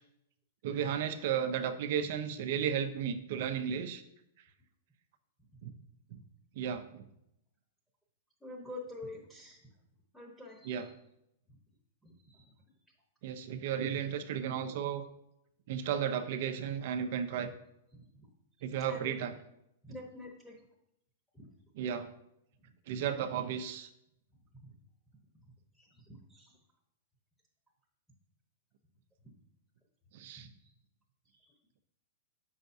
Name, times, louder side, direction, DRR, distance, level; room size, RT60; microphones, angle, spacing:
voice 1, 0.6-4.0 5.6-5.7 6.1-6.2 6.6-7.1 10.6-10.9 13.2-15.0 15.7-17.5 18.6-19.3 21.8-22.1 22.9-23.9 30.1-30.5, right 8 dB, 60° right, 9 dB, 0.6 m, -34 dB
voice 2, 8.4-9.6 10.1-10.9 12.0-12.5 17.9-18.3 18.9-19.2 19.8-20.6 21.3-21.5 25.8-26.5 30.6-30.7 31.3-31.5, left 2 dB, ahead, -4 dB, 1.1 m, -47 dB
7.7 x 5.6 x 2.7 m, 0.80 s
hypercardioid pair, 140°, 0 cm